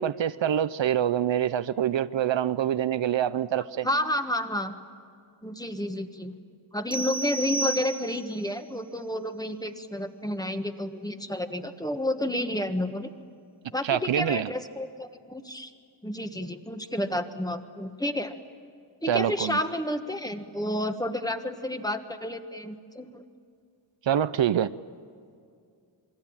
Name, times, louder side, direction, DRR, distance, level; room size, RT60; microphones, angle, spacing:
voice 1, 0.0-3.9 13.8-14.5 19.1-19.6 24.1-24.7, right 10 dB, 75° right, 0.7 m, -25 dB
voice 2, 3.8-4.7 5.4-6.3 6.7-13.1 13.7-15.7 16.0-18.4 19.0-23.2, left 1 dB, 10° left, 1.4 m, -30 dB
sound 1, 6.9-8.4, right 3 dB, 10° right, 0.9 m, -32 dB
28.0 x 22.0 x 8.7 m
wide cardioid pair, 130°, 46 cm